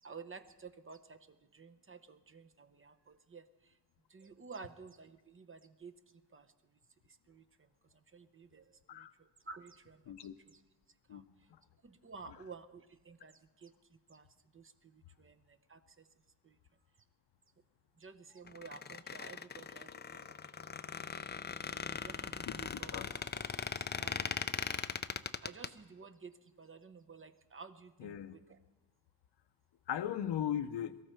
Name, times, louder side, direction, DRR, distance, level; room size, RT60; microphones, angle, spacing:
voice 1, 0.0-3.8 4.1-5.9 6.3-6.5 7.0-7.7 7.9-10.6 11.1-11.2 11.8-13.7 14.1-14.3 14.5-16.1 16.4-16.6 18.0-20.4 21.6-23.0 23.7-24.4 24.6-24.8 25.4-28.6, right 5 dB, 30° right, 9 dB, 0.7 m, -53 dB
voice 2, 11.1-11.6 22.4-23.1 28.0-28.4 29.9-31.0, left 10 dB, 75° left, 12 dB, 0.8 m, -39 dB
Squeak, 18.5-25.7, left 6 dB, 25° left, 0.4 m, -40 dB
23.0 x 14.0 x 4.4 m, 1.1 s
wide cardioid pair, 115°, 42 cm